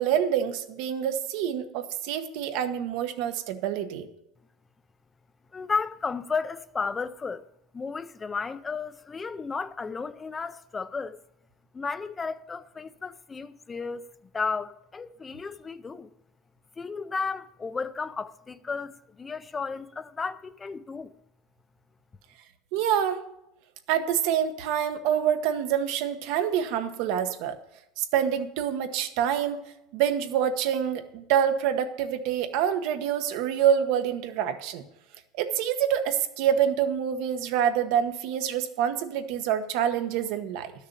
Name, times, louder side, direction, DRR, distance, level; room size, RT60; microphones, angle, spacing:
voice 1, 0.0-4.1 22.7-23.2 23.9-27.5 28.0-29.6 29.9-34.8 35.4-40.7, right 9 dB, 55° right, 1.1 m, -26 dB
voice 2, 5.5-7.4 7.7-11.2 11.7-14.1 14.3-16.1 16.8-21.2, left 4 dB, 15° left, 0.4 m, -33 dB
12.0 x 6.6 x 6.8 m
cardioid pair, 180°, 0 cm